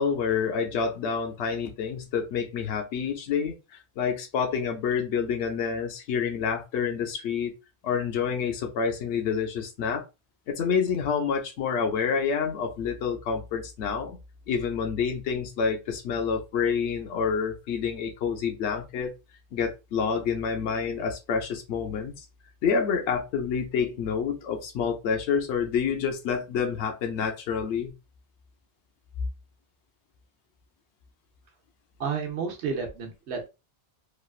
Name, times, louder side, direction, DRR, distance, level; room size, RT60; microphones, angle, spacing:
voice 1, 0.0-3.5 4.0-7.5 7.8-10.0 10.5-14.2 14.5-19.1 19.5-22.2 22.6-27.9, left 6 dB, 90° left, 3 dB, 0.9 m, -28 dB
voice 2, 32.0-33.5, right 5 dB, 90° right, 3 dB, 1.0 m, -31 dB
3.1 x 2.3 x 2.3 m, 0.27 s
omnidirectional pair, 1.1 m